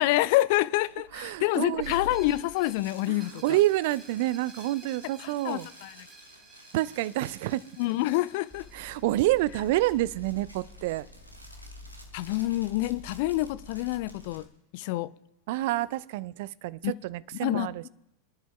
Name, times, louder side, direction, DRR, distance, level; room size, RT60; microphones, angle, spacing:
voice 1, 0.0-3.6 5.2-6.1 7.8-8.7 12.1-14.5 14.7-15.1 16.8-16.9 17.4-17.7, left 17 dB, 50° left, 0.4 m, -27 dB
sound 1, 0.8-14.5, left 1 dB, 90° right, 1.4 m, -50 dB
voice 2, 1.1-2.0 3.1-5.7 6.7-7.6 8.7-11.1 15.5-17.9, right 16 dB, 50° right, 0.3 m, -28 dB
Screech, 1.8-11.4, right 3 dB, 15° right, 2.6 m, -54 dB
sound 2, 8.5-14.5, left 2 dB, ahead, 0.9 m, -49 dB
27.0 x 10.5 x 2.3 m
figure-of-eight pair, 90°, 0 cm